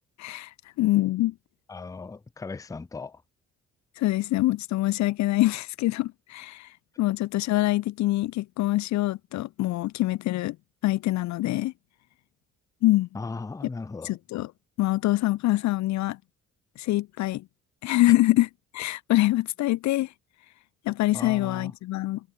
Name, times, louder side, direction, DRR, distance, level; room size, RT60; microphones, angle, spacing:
voice 1, 0.2-0.5 0.8-1.3 4.0-6.7 7.0-10.6 10.8-11.7 12.8-13.1 14.0-14.5 14.8-16.2 16.8-17.4 17.8-18.5 18.7-20.1 20.9-22.2, left 17 dB, 65° left, 0.4 m, -24 dB
voice 2, 1.7-3.2 13.1-14.2 21.1-21.7, left 4 dB, 10° left, 0.5 m, -37 dB
cardioid pair, 90°, 30 cm